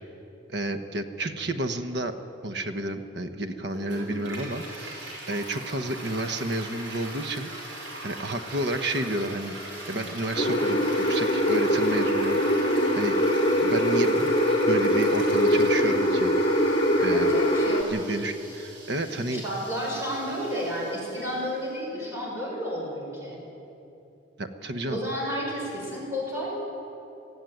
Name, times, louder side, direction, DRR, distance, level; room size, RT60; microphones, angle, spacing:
voice 1, 0.5-2.2 2.4-7.5 8.0-9.6 9.9-12.4 12.6-13.1 13.6-14.3 14.7-16.3 17.0-17.3 17.9-19.4 24.4-25.0, right 1 dB, 60° right, 8 dB, 1.1 m, -31 dB
Toilet flush, 3.7-21.6, right 1 dB, 80° right, 5.8 m, -41 dB
sound 1, 10.4-17.8, equal, 30° left, 2.1 m, -22 dB
voice 2, 17.1-17.9 19.3-23.4 24.9-26.5, equal, 15° right, -4 dB, 6.4 m, -31 dB
19.5 x 14.5 x 9.3 m, 2.9 s
head